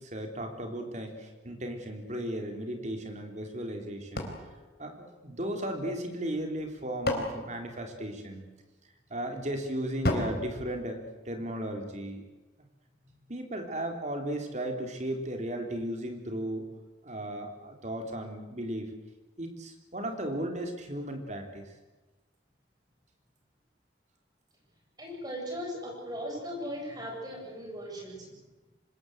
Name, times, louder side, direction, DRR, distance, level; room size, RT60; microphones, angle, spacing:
voice 1, 0.0-4.3 4.8-8.4 9.1-12.2 13.3-16.7 17.0-18.9 19.4-21.6, right 1 dB, 40° right, 4 dB, 3.5 m, -35 dB
sound 1, 4.1-5.7 6.5-8.5 10.0-11.6, left 1 dB, 55° left, 4.2 m, -35 dB
voice 2, 25.0-28.4, equal, 20° right, -1 dB, 7.9 m, -38 dB
25.5 x 20.5 x 8.0 m, 1.2 s
head